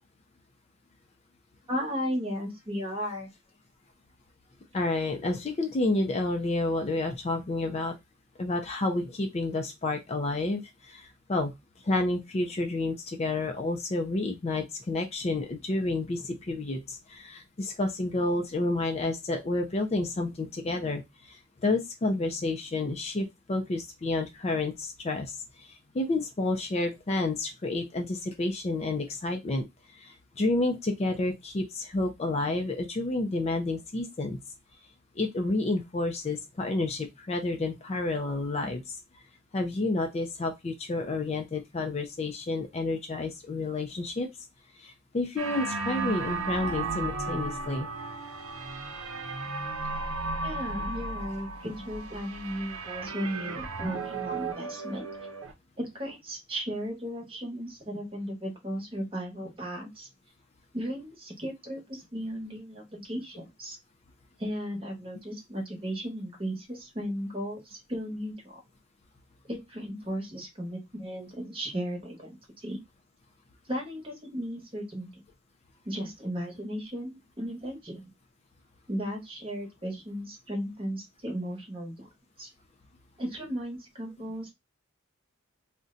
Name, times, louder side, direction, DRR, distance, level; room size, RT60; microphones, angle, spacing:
voice 1, 1.7-3.3 50.4-55.1 55.8-60.1 60.7-63.8 64.4-68.6 69.5-72.4 72.6-72.8 73.7-75.1 75.8-78.0 78.9-82.1 82.4-82.5 83.2-84.5, equal, 25° right, 1 dB, 1.0 m, -35 dB
voice 2, 4.7-7.9 8.4-11.5 11.8-34.4 35.2-39.0 39.5-44.3 44.8-47.9 53.0-53.1, left 2 dB, 30° left, 4 dB, 0.4 m, -30 dB
sound 1, 45.4-55.5, right 3 dB, 85° right, 0.6 m, -35 dB
2.6 x 2.1 x 3.7 m, 0.20 s
head